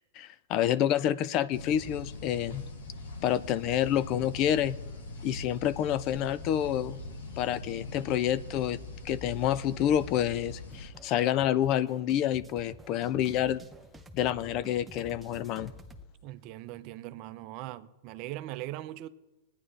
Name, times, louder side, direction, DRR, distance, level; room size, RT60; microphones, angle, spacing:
voice 1, 0.0-2.6 3.2-4.8 5.2-7.0 7.4-8.8 9.0-13.6 14.1-15.7, left 11 dB, 45° left, 0.5 m, -28 dB
sound 1, 1.5-10.9, left 2 dB, 80° left, 1.7 m, -42 dB
sound 2, 10.5-16.1, right 1 dB, 10° right, 0.8 m, -50 dB
voice 2, 16.2-19.1, right 15 dB, 50° right, 0.6 m, -40 dB
20.5 x 9.8 x 3.3 m
hypercardioid pair, 115°, 0 cm